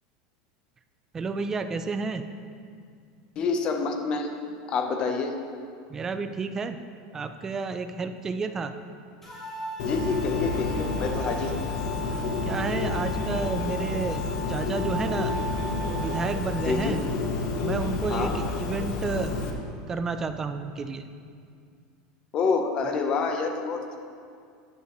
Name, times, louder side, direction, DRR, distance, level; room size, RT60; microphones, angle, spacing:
voice 1, 1.1-2.2 5.9-6.8 7.1-8.7 12.4-14.2 14.5-15.3 15.9-17.0 17.6-19.4 19.9-21.1, right 4 dB, 15° right, 8 dB, 0.4 m, -31 dB
voice 2, 3.4-4.3 4.7-5.3 9.8-11.5 16.6-17.0 18.1-18.3 22.3-24.0, left 4 dB, 25° left, 4 dB, 0.8 m, -27 dB
sound 1, 9.2-16.8, equal, 10° left, 1.8 m, -37 dB
Bird, 9.8-19.5, left 3 dB, 55° left, 1.2 m, -30 dB
13.0 x 9.4 x 3.1 m, 2.3 s
supercardioid pair, 175°, 4 cm